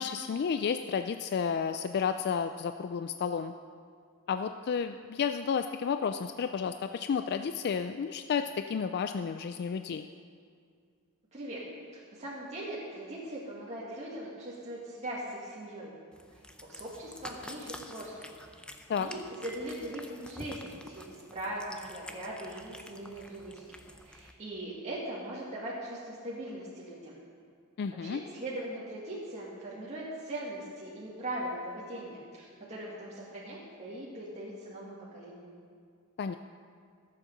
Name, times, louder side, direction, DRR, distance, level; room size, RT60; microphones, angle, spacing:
voice 1, 0.0-3.5 4.3-10.1 18.9-19.1 27.8-28.2 36.2-36.4, left 6 dB, 45° left, 8 dB, 0.3 m, -31 dB
voice 2, 11.3-11.6 12.1-15.9 16.6-18.3 18.9-23.8 24.0-27.2 28.0-35.6, right 1 dB, 30° right, -7 dB, 1.9 m, -40 dB
Cat, 16.1-24.3, left 1 dB, 5° left, 0.6 m, -48 dB
14.0 x 7.6 x 6.5 m, 2.2 s
head